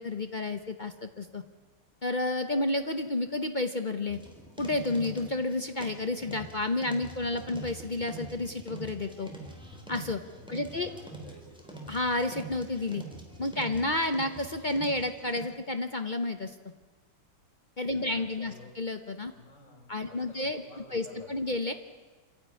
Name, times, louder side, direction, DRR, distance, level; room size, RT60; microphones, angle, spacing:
voice 1, 0.0-1.4 2.0-4.2 4.6-9.3 9.9-10.2 10.5-10.9 11.9-13.0 13.4-16.5 17.8-19.3 19.9-21.7, left 2 dB, 50° left, 7 dB, 0.5 m, -31 dB
sound 1, 4.1-15.4, right 2 dB, ahead, 3.5 m, -45 dB
voice 2, 10.3-11.6 17.8-18.7 19.3-21.5, left 1 dB, 30° left, -1 dB, 7.2 m, -52 dB
27.5 x 11.5 x 9.7 m, 1.4 s
omnidirectional pair, 2.4 m